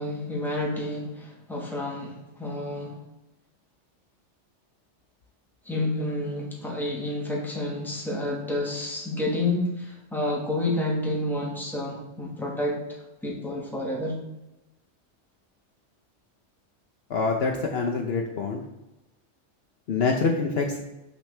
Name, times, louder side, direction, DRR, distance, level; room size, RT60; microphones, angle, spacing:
voice 1, 0.0-3.0 5.6-12.8 13.2-14.2, left 1 dB, ahead, -2 dB, 1.3 m, -29 dB
voice 2, 17.1-18.6 19.9-20.8, left 4 dB, 60° left, 2 dB, 0.9 m, -25 dB
6.5 x 5.9 x 3.3 m, 0.98 s
omnidirectional pair, 1.3 m